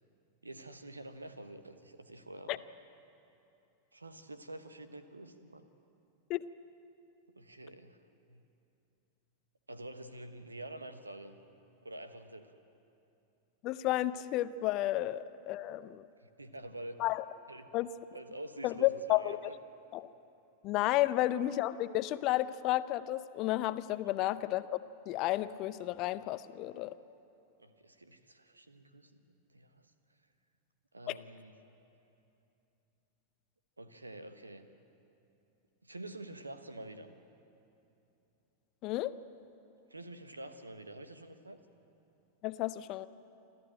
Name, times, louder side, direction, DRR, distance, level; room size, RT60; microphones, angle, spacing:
voice 1, 0.4-2.6 3.9-5.7 7.3-8.0 8.3-8.4 9.7-11.4 11.8-12.5 16.2-17.0 17.5-17.7 18.1-19.5 27.6-29.2 29.5-29.9 30.9-31.6 33.8-34.7 35.8-37.2 39.9-41.6, right 1 dB, 80° right, 10 dB, 1.2 m, -47 dB
voice 2, 13.6-16.0 17.0-17.2 17.7-17.9 18.6-19.4 19.9-20.1 20.6-24.8 25.1-26.9 31.1-31.2 38.8-39.1 42.4-43.1, left 15 dB, 40° left, 15 dB, 0.6 m, -32 dB
26.0 x 14.0 x 8.9 m, 2.9 s
figure-of-eight pair, 90°, 0 cm